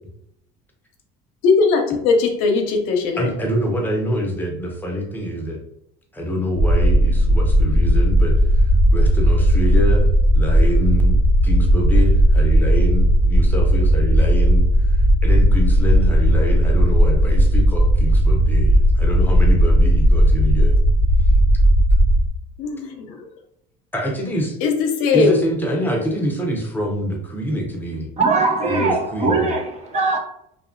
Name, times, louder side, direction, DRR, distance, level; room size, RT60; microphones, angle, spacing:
voice 1, 1.4-3.3 22.6-23.3 24.6-25.4, left 4 dB, 75° left, 0.6 m, -19 dB
voice 2, 3.2-5.6 6.1-11.2 11.4-20.8 23.9-24.6 25.1-28.1 28.7-29.5, equal, 10° left, 0.7 m, -25 dB
sound 1, 6.6-22.3, equal, 85° right, 1.2 m, -15 dB
voice 3, 28.2-30.2, right 3 dB, 35° right, 0.6 m, -20 dB
2.7 x 2.2 x 2.5 m
supercardioid pair, 100°, 20 cm